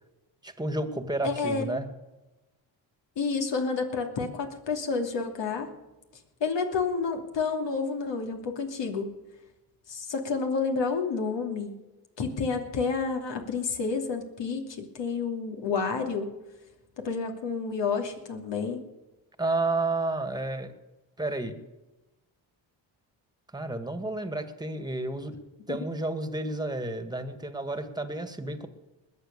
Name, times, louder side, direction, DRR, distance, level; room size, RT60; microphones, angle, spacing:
voice 1, 0.4-1.9 19.4-20.7 21.2-21.6 23.5-25.3 25.7-28.7, right 2 dB, 10° right, 9 dB, 2.0 m, -31 dB
voice 2, 1.2-1.8 3.2-5.7 6.4-9.1 9.9-11.8 12.2-16.3 17.0-18.8 25.7-25.8, left 4 dB, 60° left, 3 dB, 3.0 m, -30 dB
20.5 x 7.7 x 6.9 m, 1.0 s
supercardioid pair, 65°, 47 cm